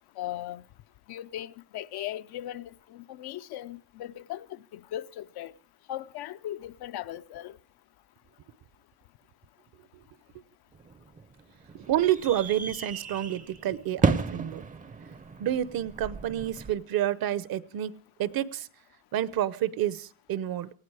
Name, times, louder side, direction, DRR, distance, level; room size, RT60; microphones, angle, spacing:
voice 1, 0.2-0.6 1.1-5.5 5.9-7.6, left 12 dB, 60° left, 0.7 m, -38 dB
sound 1, 10.7-16.7, right 4 dB, 20° right, 0.7 m, -33 dB
voice 2, 11.7-14.6 15.4-17.9 18.2-18.7 19.1-20.7, right 12 dB, 55° right, 0.9 m, -29 dB
19.0 x 15.0 x 4.8 m
cardioid pair, 130°, 44 cm